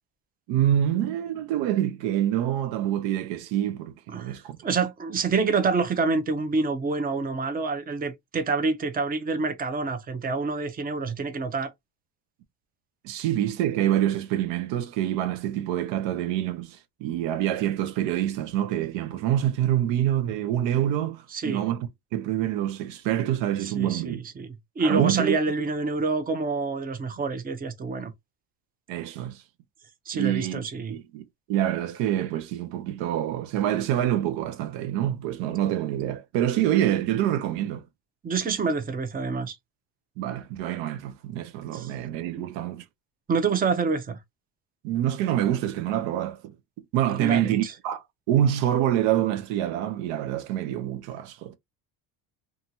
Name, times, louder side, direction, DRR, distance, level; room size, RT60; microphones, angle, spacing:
voice 1, 0.5-4.6 13.0-24.2 24.8-25.4 28.9-29.4 30.1-37.8 40.2-42.8 44.8-46.5 46.9-51.6, right 11 dB, 85° right, 0.6 m, -26 dB
voice 2, 4.6-11.7 21.3-21.6 23.6-24.5 24.8-28.1 30.1-31.0 38.2-39.6 41.7-41.9 43.3-44.2 47.2-47.7, right 4 dB, 20° right, 0.6 m, -27 dB
2.7 x 2.4 x 2.7 m
cardioid pair, 110°, 43 cm